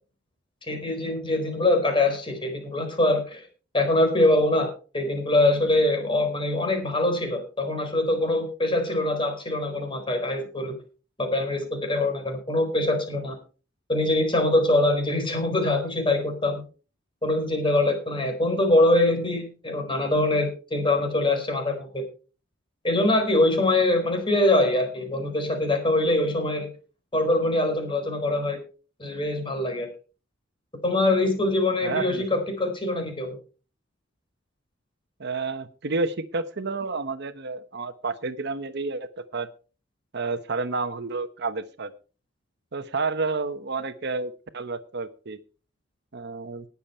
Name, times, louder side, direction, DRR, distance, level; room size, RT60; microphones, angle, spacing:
voice 1, 0.7-3.4 3.7-10.7 11.2-13.4 13.9-16.6 17.2-22.0 22.8-26.7 27.1-28.6 29.0-29.9 30.8-33.4, left 2 dB, 25° left, 4 dB, 4.3 m, -23 dB
voice 2, 31.8-32.3 35.2-39.5 40.1-41.9 42.7-45.4 46.1-46.6, right 3 dB, 60° right, 11 dB, 1.0 m, -30 dB
19.0 x 7.1 x 4.4 m, 0.36 s
head